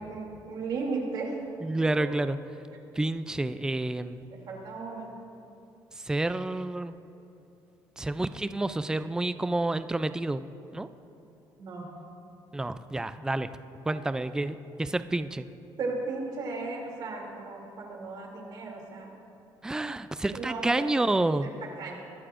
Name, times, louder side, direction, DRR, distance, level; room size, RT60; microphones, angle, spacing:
voice 1, 0.0-1.3 4.3-5.1 11.6-11.9 15.8-19.2 20.3-20.9 21.4-21.5 21.8-21.9, right 3 dB, 60° right, -1 dB, 2.8 m, -35 dB
voice 2, 1.6-2.4 3.0-4.2 6.0-7.0 8.0-10.4 10.7-10.9 12.5-13.5 13.9-15.5 19.6-21.5, right 2 dB, 10° right, 12 dB, 0.4 m, -29 dB
22.5 x 11.5 x 2.5 m, 2.8 s
cardioid pair, 120°, 8 cm